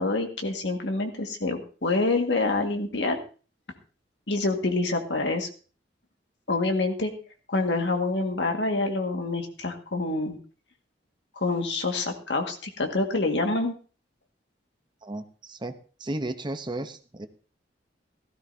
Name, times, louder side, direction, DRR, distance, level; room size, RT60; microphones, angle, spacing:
voice 1, 0.0-3.2 4.3-5.5 6.5-7.1 7.5-10.4 11.4-13.8, left 2 dB, 70° left, 4 dB, 1.9 m, -26 dB
voice 2, 15.0-17.3, right 2 dB, 25° right, 8 dB, 0.8 m, -34 dB
16.5 x 14.5 x 2.8 m, 0.37 s
head